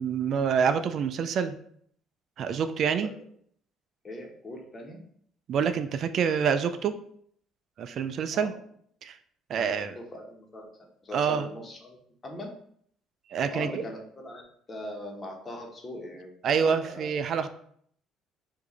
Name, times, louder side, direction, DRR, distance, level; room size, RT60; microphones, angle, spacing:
voice 1, 0.0-1.5 2.4-3.1 5.5-7.0 7.8-8.5 9.0-9.2 9.5-10.0 11.1-11.5 13.3-13.8 16.4-17.5, right 6 dB, 60° right, 10 dB, 0.3 m, -27 dB
voice 2, 4.0-5.0 8.3-8.5 9.5-10.7 11.0-12.5 13.5-14.4 14.7-17.1, left 1 dB, 35° left, 1 dB, 1.2 m, -40 dB
4.7 x 2.6 x 4.1 m, 0.64 s
supercardioid pair, 80°, 0 cm